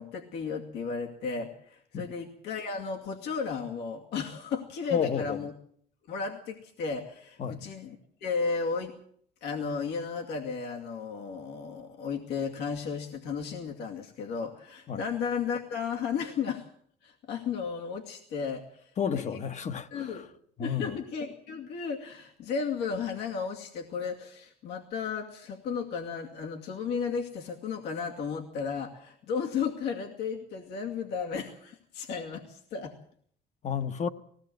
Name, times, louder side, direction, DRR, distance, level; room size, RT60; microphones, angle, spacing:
voice 1, 0.0-5.5 6.1-8.9 9.4-16.7 17.0-19.4 19.9-20.2 20.6-32.9, left 5 dB, 85° left, 2.4 m, -34 dB
voice 2, 4.9-5.4 7.4-7.7 14.9-15.0 19.0-20.3 20.6-21.0 33.6-34.1, left 7 dB, 45° left, 1.2 m, -31 dB
19.5 x 17.0 x 8.0 m
cardioid pair, 110°, 17 cm